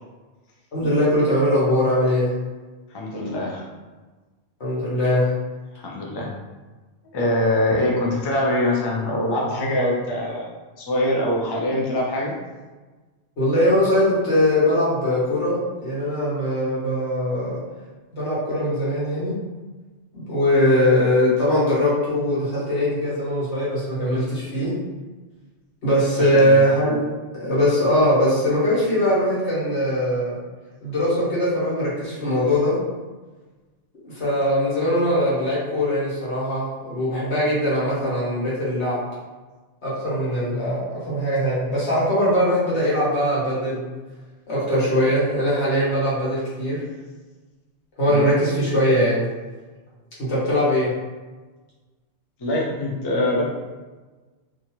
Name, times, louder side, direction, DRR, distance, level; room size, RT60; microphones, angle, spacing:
voice 1, 0.7-2.3 4.6-5.3 13.4-17.6 18.1-19.3 20.1-24.7 25.8-27.0 27.4-30.4 30.8-32.8 34.0-39.0 39.8-43.8 44.5-46.8 48.0-49.3 50.3-50.9, equal, 90° left, -8 dB, 1.4 m, -21 dB
voice 2, 2.9-3.7 5.7-6.3 7.1-10.5 10.8-12.3 26.2-26.6 48.1-48.2 52.4-53.4, left 1 dB, 40° left, -2 dB, 0.3 m, -23 dB
2.6 x 2.4 x 2.9 m, 1.3 s
omnidirectional pair, 1.1 m